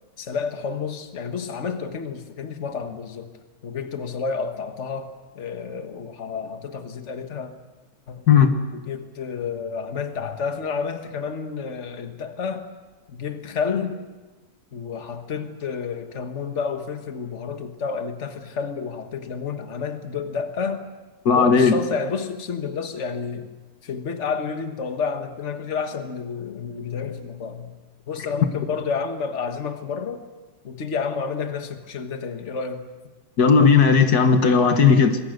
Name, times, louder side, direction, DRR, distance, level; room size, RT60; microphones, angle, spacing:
voice 1, 0.2-3.3 3.6-7.5 8.1-8.4 8.7-12.7 13.1-14.0 14.7-20.9 21.3-23.5 23.8-27.7 28.1-30.2 30.6-32.8, left 5 dB, 50° left, 1.8 m, -30 dB
voice 2, 21.3-21.7 33.4-35.2, left 6 dB, 75° left, 1.9 m, -15 dB
27.0 x 21.0 x 6.6 m
omnidirectional pair, 1.7 m